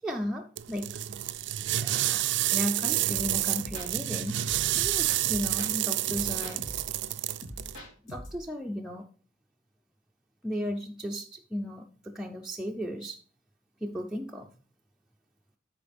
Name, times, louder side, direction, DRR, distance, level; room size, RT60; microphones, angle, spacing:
voice 1, 0.0-0.9 1.8-2.3 2.5-4.4 4.8-6.7 8.0-9.0 10.4-13.2 13.8-14.5, equal, 5° right, 0 dB, 0.5 m, -35 dB
sound 1, 0.6-7.8, right 14 dB, 65° right, 0.4 m, -29 dB
sound 2, 3.1-5.8 6.1-8.4, equal, 85° left, 2.7 m, -43 dB
12.5 x 4.8 x 3.4 m, 0.42 s
head